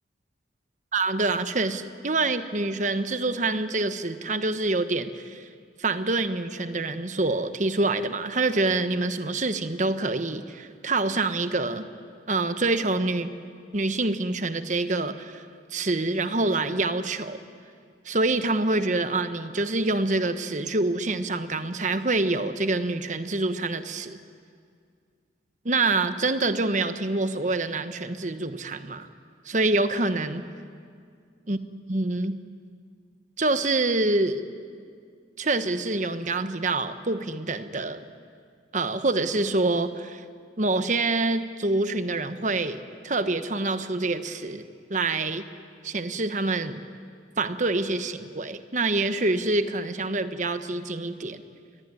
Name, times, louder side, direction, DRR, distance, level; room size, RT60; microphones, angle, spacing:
voice 1, 0.9-5.5 5.8-11.9 12.3-13.3 13.7-15.4 15.7-17.4 18.0-24.2 25.6-29.1 29.4-30.4 31.5-31.6 31.9-32.4 33.4-34.4 35.4-38.1 38.7-40.2 40.6-44.6 44.9-45.5 45.8-46.8 47.4-51.4, right 2 dB, 40° right, 10 dB, 1.2 m, -26 dB
27.0 x 22.5 x 9.9 m, 2.2 s
head